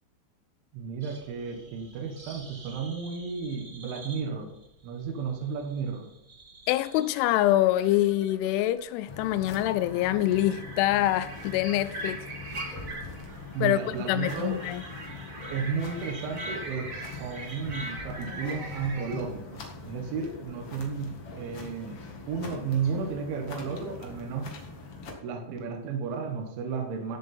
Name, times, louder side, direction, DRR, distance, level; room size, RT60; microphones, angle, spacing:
voice 1, 0.7-4.5 4.8-6.1 13.5-14.6 15.5-24.5 25.2-27.2, right 5 dB, 75° right, 3.7 m, -33 dB
sound 1, 1.0-19.2, right 2 dB, 30° right, 1.4 m, -43 dB
voice 2, 6.7-12.2 12.6-12.8 13.6-13.8 14.1-14.8, left 14 dB, 85° left, 2.9 m, -25 dB
sound 2, 9.1-25.1, left 3 dB, 60° left, 1.5 m, -43 dB
15.5 x 7.3 x 4.4 m
omnidirectional pair, 5.6 m